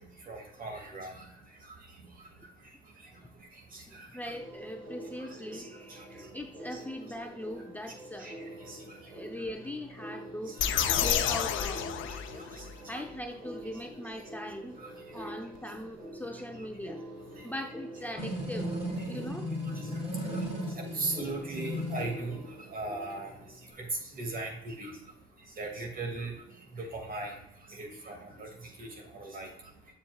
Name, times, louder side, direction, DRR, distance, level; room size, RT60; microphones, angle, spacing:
voice 1, 0.3-1.2 3.7-4.1 5.5-5.6 6.7-6.8 8.2-8.3 8.7-8.8 10.5-10.6 12.1-12.2 12.6-12.7 14.8-14.9 20.8-22.4 22.7-23.3 23.8-23.9 24.1-24.9 25.6-26.4 26.8-27.3 27.7-28.5 28.8-28.9 29.1-29.5, right 2 dB, 45° right, 2 dB, 2.1 m, -37 dB
voice 2, 3.9-8.3 9.0-10.5 10.9-11.9 12.9-14.8 15.1-17.0 17.4-18.7 19.1-19.5, left 1 dB, 10° left, 3 dB, 0.6 m, -40 dB
sound 1, 4.3-23.7, right 1 dB, 85° right, 2.4 m, -46 dB
sound 2, 10.6-12.7, left 9 dB, 80° left, 0.6 m, -29 dB
sound 3, 18.2-22.2, equal, 30° right, 2.3 m, -35 dB
7.3 x 7.2 x 2.3 m, 0.82 s
cardioid pair, 90°, 20 cm